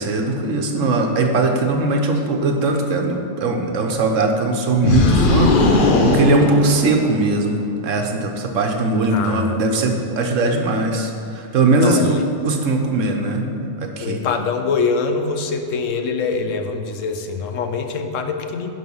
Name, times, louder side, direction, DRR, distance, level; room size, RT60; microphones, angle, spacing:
voice 1, 0.0-14.2, right 2 dB, 85° right, 4 dB, 1.3 m, -20 dB
sound 1, 4.8-7.3, left 3 dB, 50° left, 0.8 m, -17 dB
voice 2, 9.1-9.6 11.8-12.2 14.0-18.7, left 5 dB, 80° left, 5 dB, 1.1 m, -24 dB
11.0 x 5.4 x 5.5 m, 2.4 s
omnidirectional pair, 1.3 m